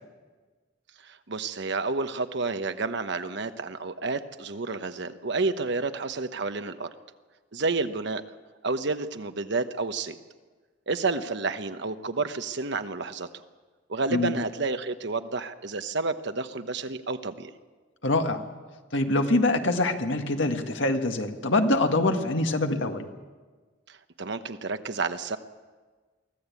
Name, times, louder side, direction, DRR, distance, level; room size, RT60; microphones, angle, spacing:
voice 1, 1.0-6.9 7.5-8.2 8.6-10.2 10.9-13.3 13.9-17.5 23.9-25.4, right 3 dB, 65° right, 9 dB, 1.1 m, -30 dB
voice 2, 18.0-18.4 18.9-23.0, left 2 dB, 70° left, 5 dB, 1.8 m, -24 dB
24.0 x 15.5 x 8.4 m, 1.4 s
head